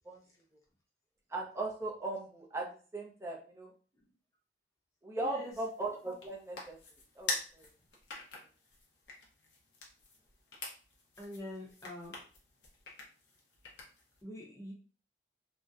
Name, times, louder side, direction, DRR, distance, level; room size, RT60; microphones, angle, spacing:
voice 1, 1.3-3.7 5.0-6.8 7.2-7.7, right 2 dB, 15° right, -2 dB, 0.5 m, -38 dB
voice 2, 5.2-5.5 11.2-12.1 14.2-14.7, left 1 dB, 20° left, -3 dB, 0.7 m, -44 dB
sound 1, 5.5-14.2, left 3 dB, 75° left, 0.7 m, -45 dB
2.6 x 2.1 x 2.3 m, 0.39 s
head